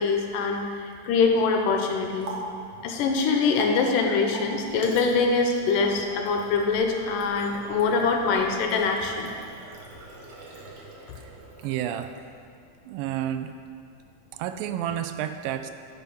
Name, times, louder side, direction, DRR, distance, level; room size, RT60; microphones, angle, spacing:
voice 1, 0.0-2.3 2.8-9.3, left 4 dB, 80° left, 3 dB, 2.3 m, -24 dB
Water tap faucet, 1.7-12.5, right 2 dB, 65° right, 1.4 m, -43 dB
voice 2, 11.6-12.1 12.9-13.5 14.3-15.7, right 11 dB, 85° right, 9 dB, 2.3 m, -30 dB
10.5 x 5.5 x 5.4 m, 2.3 s
omnidirectional pair, 4.0 m